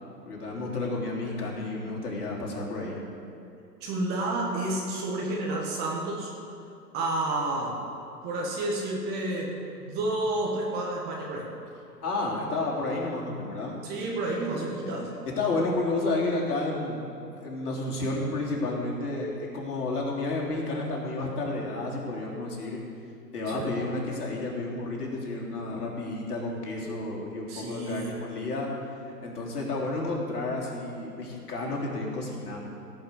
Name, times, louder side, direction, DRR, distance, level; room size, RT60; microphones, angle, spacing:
voice 1, 0.3-3.0 12.0-13.7 14.8-14.9 15.4-17.1 17.3-22.8 23.3-28.7 29.0-32.6, left 2 dB, 65° left, -3 dB, 3.8 m, -31 dB
voice 2, 3.8-6.3 6.9-7.8 8.2-9.5 9.8-11.5 13.8-15.1 23.5-23.7 27.5-28.2, right 2 dB, 20° right, -2 dB, 1.5 m, -30 dB
17.0 x 5.9 x 8.4 m, 2.7 s
hypercardioid pair, 140°, 50 cm